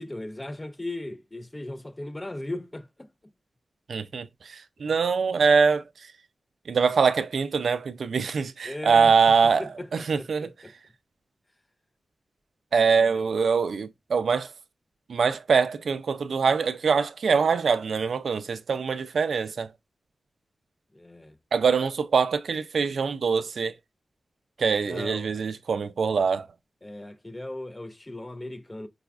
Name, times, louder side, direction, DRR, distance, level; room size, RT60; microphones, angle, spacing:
voice 1, 0.0-3.1 8.6-9.1 9.6-10.7 12.9-13.1 20.9-21.4 24.9-25.3 26.8-28.9, left 1 dB, 20° left, 0.3 m, -37 dB
voice 2, 3.9-6.1 6.7-10.5 12.7-14.5 15.1-19.7 21.5-23.8 24.6-26.5, right 5 dB, 85° right, 0.3 m, -24 dB
4.7 x 2.3 x 2.3 m
wide cardioid pair, 85°, 0 cm